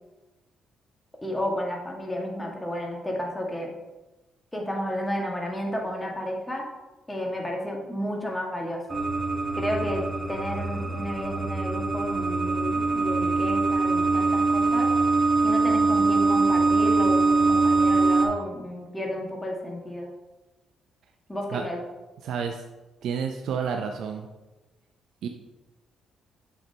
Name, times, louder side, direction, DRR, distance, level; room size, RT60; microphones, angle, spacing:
voice 1, 1.2-3.7 4.5-6.7 7.1-9.0 9.5-14.9 15.4-20.1 21.3-21.8, left 1 dB, 10° left, 0 dB, 1.7 m, -32 dB
sound 1, 8.9-18.3, right 3 dB, 30° right, 1.2 m, -23 dB
voice 2, 22.2-22.6 23.0-24.3 25.2-25.3, right 6 dB, 75° right, 4 dB, 0.6 m, -30 dB
8.0 x 7.1 x 2.9 m, 1.1 s
cardioid pair, 90°, 0 cm